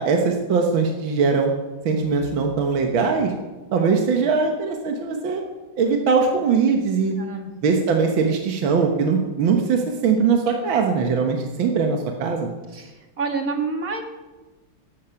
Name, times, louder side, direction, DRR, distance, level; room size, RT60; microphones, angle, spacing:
voice 1, 0.0-1.5 1.9-3.3 3.7-5.4 5.8-7.2 7.6-12.5, right 5 dB, 70° right, 3 dB, 2.1 m, -21 dB
voice 2, 7.2-7.5 12.7-14.0, right 4 dB, 45° right, 3 dB, 2.0 m, -28 dB
14.0 x 12.0 x 5.8 m, 1.2 s
omnidirectional pair, 2.3 m